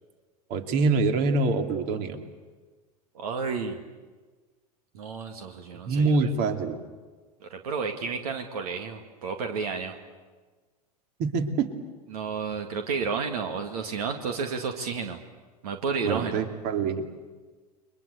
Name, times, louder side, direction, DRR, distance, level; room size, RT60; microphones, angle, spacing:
voice 1, 0.5-2.2 5.9-6.8 11.2-11.7 16.0-17.0, right 4 dB, 50° right, 6 dB, 2.7 m, -25 dB
voice 2, 3.1-3.8 4.9-6.3 7.5-10.0 12.1-15.2 15.6-16.4, right 5 dB, 70° right, 5 dB, 2.2 m, -31 dB
30.0 x 23.0 x 8.1 m, 1.4 s
hypercardioid pair, 95°, 20 cm